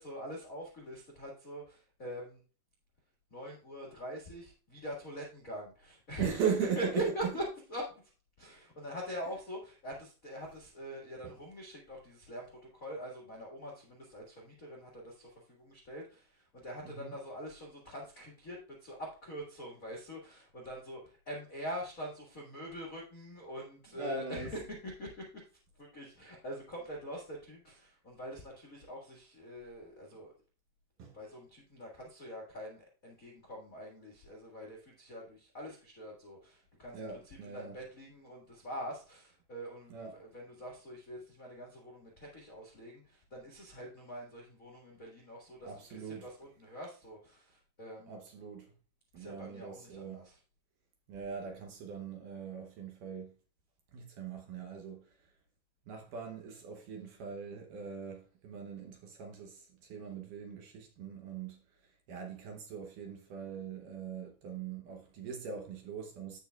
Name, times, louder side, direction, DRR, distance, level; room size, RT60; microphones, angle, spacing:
voice 1, 0.0-2.4 3.3-6.4 6.7-7.4 7.7-7.9 8.4-24.5 25.0-25.3 25.8-30.3 31.1-48.1 49.1-50.4, equal, 75° left, 0.7 m, -44 dB
voice 2, 6.2-7.3 11.2-11.3 16.8-17.2 23.9-24.5 31.0-31.1 36.9-37.8 39.9-40.2 45.6-46.3 48.1-48.7 49.1-50.3 51.1-53.3 53.9-55.2 55.9-66.4, right 7 dB, 70° right, 2.1 m, -40 dB
14.5 x 5.4 x 2.3 m
omnidirectional pair, 4.6 m